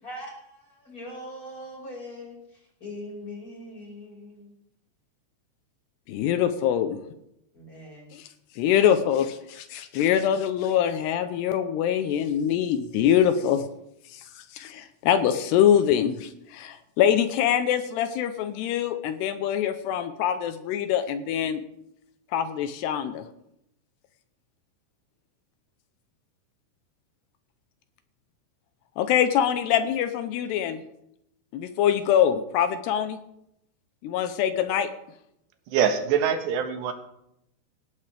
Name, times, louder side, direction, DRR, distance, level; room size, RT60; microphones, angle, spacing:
voice 1, 0.0-4.5 7.5-8.0, left 1 dB, 20° left, -2 dB, 5.5 m, -41 dB
voice 2, 6.1-7.0 8.1-8.3 8.6-13.6 14.1-21.6 22.3-23.2 29.0-30.8 31.5-33.2 34.0-34.9, left 9 dB, 80° left, 10 dB, 2.8 m, -24 dB
voice 3, 35.7-36.9, right 8 dB, 85° right, 6 dB, 3.5 m, -24 dB
18.5 x 15.0 x 3.4 m, 0.80 s
omnidirectional pair, 4.9 m